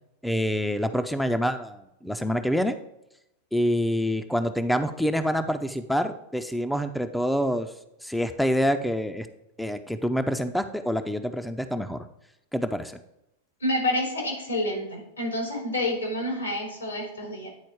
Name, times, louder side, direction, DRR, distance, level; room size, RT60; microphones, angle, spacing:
voice 1, 0.2-2.8 3.5-7.7 8.0-9.3 9.6-12.0 12.5-13.0, equal, ahead, 8 dB, 0.6 m, -26 dB
voice 2, 13.6-17.5, left 1 dB, 90° left, 0 dB, 3.2 m, -28 dB
9.8 x 4.2 x 4.6 m, 0.86 s
hypercardioid pair, 95°, 0 cm